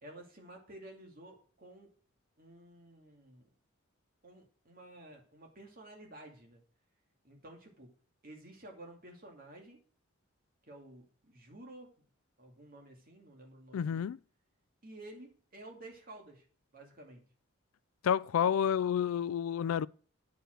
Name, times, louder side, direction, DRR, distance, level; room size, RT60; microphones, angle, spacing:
voice 1, 0.0-1.9 2.4-3.5 4.2-6.6 7.2-8.0 8.2-9.8 10.6-12.1 12.4-14.1 14.8-16.5 16.7-17.3, right 1 dB, 45° right, 2.4 m, -52 dB
voice 2, 13.7-14.2 18.0-19.9, left 8 dB, 85° left, 0.3 m, -29 dB
9.3 x 5.0 x 6.0 m
head